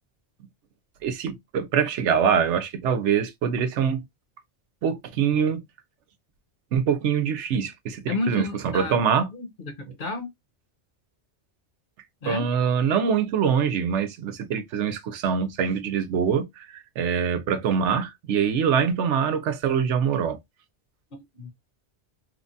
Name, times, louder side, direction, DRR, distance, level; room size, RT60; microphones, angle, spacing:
voice 1, 1.0-4.0 4.8-5.6 6.7-9.3 12.3-20.4, right 7 dB, 90° right, 0.9 m, -24 dB
voice 2, 8.1-9.0 9.3-10.3 12.2-12.5 21.1-21.5, left 2 dB, 50° left, 0.9 m, -31 dB
3.0 x 2.2 x 2.6 m
omnidirectional pair, 1.2 m